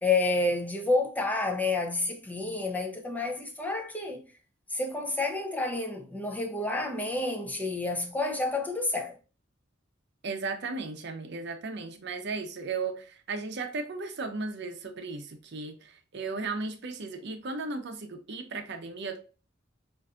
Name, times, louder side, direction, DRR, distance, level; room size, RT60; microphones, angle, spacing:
voice 1, 0.0-4.2 4.7-9.1, left 2 dB, 10° left, 0.5 m, -29 dB
voice 2, 10.2-19.2, right 3 dB, 60° right, 0.6 m, -35 dB
5.3 x 2.5 x 2.4 m
head